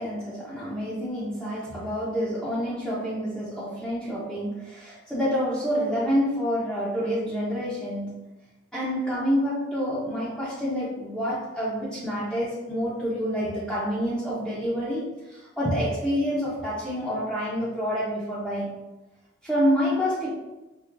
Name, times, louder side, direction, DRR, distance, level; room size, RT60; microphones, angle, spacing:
voice 1, 0.0-8.1 8.7-18.7 19.4-20.3, equal, ahead, -11 dB, 0.8 m, -28 dB
4.6 x 2.7 x 2.5 m, 1.1 s
head